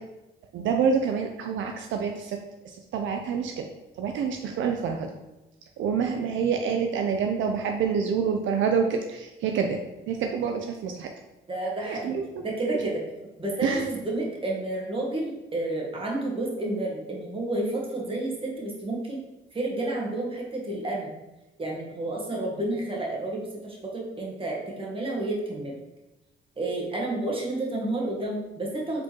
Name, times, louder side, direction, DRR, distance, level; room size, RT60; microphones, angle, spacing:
voice 1, 0.5-2.4 2.6-3.7 4.0-5.1 5.8-9.8 10.1-11.1 11.8-12.2 13.6-13.9, right 6 dB, 70° right, 4 dB, 0.4 m, -27 dB
voice 2, 11.5-13.0 13.4-19.2 19.5-21.1 21.6-25.7 26.6-29.0, right 2 dB, 25° right, -3 dB, 1.3 m, -30 dB
4.9 x 3.7 x 2.9 m, 1.0 s
cardioid pair, 90°, 20 cm